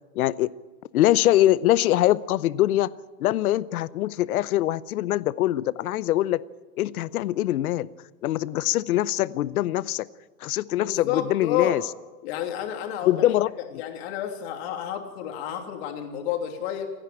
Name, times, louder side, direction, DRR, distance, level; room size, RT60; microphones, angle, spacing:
voice 1, 0.1-0.5 0.9-2.9 3.2-6.4 6.8-7.9 8.2-10.1 10.4-11.8 13.0-13.5, left 14 dB, 70° left, 18 dB, 0.8 m, -23 dB
voice 2, 10.8-11.8 12.2-13.2 13.7-16.9, left 10 dB, 45° left, 3 dB, 3.0 m, -30 dB
28.5 x 10.5 x 8.7 m, 1.2 s
supercardioid pair, 165°, 45 cm